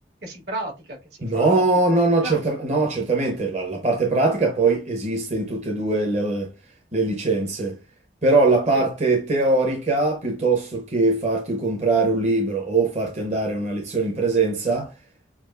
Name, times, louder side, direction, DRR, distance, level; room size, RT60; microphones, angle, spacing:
voice 1, 0.2-1.9 2.2-2.4 8.7-8.8, right 2 dB, 70° right, 2.3 m, -33 dB
voice 2, 1.2-6.5 6.9-7.8 8.2-14.9, right 3 dB, 40° right, 0.9 m, -21 dB
7.0 x 2.5 x 2.4 m
head